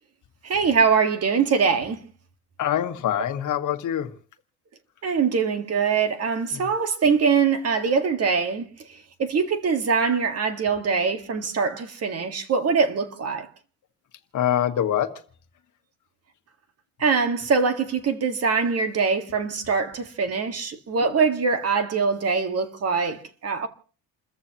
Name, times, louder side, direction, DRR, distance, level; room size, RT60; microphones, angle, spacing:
voice 1, 0.4-2.0 5.0-8.7 9.2-13.5 17.0-23.7, right 5 dB, 40° right, 1.9 m, -23 dB
voice 2, 2.6-4.1 6.5-6.7 14.3-15.2, left 10 dB, 50° left, 1.6 m, -24 dB
29.0 x 14.5 x 3.0 m
cardioid pair, 135°, 39 cm